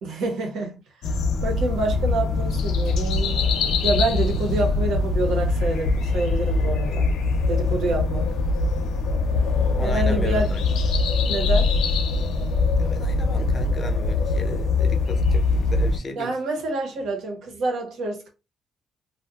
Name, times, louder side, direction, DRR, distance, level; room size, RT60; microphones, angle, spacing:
voice 1, 0.0-0.8 1.4-3.4 3.8-7.1 7.5-8.3 9.8-10.6 11.3-11.7 16.2-18.3, right 3 dB, 80° right, 1.1 m, -27 dB
sound 1, 1.0-16.0, left 3 dB, 80° left, 0.6 m, -22 dB
voice 2, 9.8-10.6 12.8-16.3, left 3 dB, 35° left, 0.8 m, -35 dB
2.6 x 2.2 x 3.6 m
cardioid pair, 90°, 0 cm